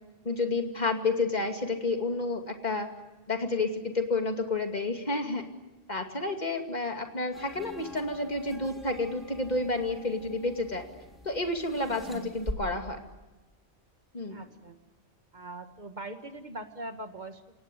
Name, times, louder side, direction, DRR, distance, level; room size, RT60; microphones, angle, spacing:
voice 1, 0.2-2.9 3.3-5.5 5.9-10.9 11.2-13.0 14.1-14.4, left 3 dB, 35° left, 4 dB, 2.6 m, -30 dB
sound 1, 7.3-12.5, equal, ahead, 3.3 m, -44 dB
voice 2, 14.3-14.8 15.3-17.6, right 2 dB, 40° right, 7 dB, 1.8 m, -42 dB
28.0 x 18.0 x 9.8 m, 1.1 s
omnidirectional pair, 1.2 m